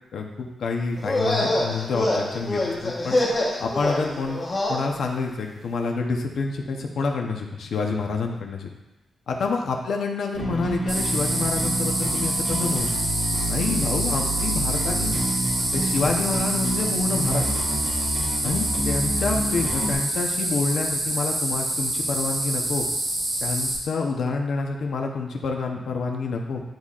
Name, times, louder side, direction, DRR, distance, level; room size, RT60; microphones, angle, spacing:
voice 1, 0.1-3.2 3.6-4.4 4.7-8.7 9.3-12.9 13.5-15.1 15.7-17.4 18.4-22.9 23.4-26.6, left 4 dB, 65° left, 1 dB, 0.8 m, -28 dB
sound 1, 1.0-4.8, left 1 dB, 25° left, 1.1 m, -25 dB
Bass guitar, 10.3-19.9, right 1 dB, 25° right, 2.0 m, -29 dB
sound 2, 10.9-23.7, right 1 dB, 40° right, 1.4 m, -27 dB
10.5 x 4.0 x 2.4 m, 1.0 s
wide cardioid pair, 175°, 0 cm